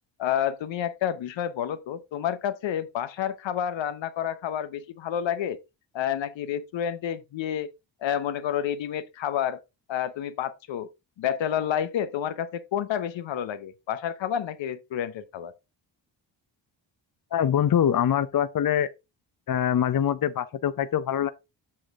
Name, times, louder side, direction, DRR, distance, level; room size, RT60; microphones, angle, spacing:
voice 1, 0.2-5.6 5.9-7.7 8.0-9.6 9.9-10.9 11.2-15.5, left 9 dB, 80° left, 0.9 m, -29 dB
voice 2, 17.3-18.9 19.5-21.3, left 9 dB, 50° left, 0.7 m, -24 dB
7.7 x 6.0 x 3.6 m
cardioid pair, 65°, 45 cm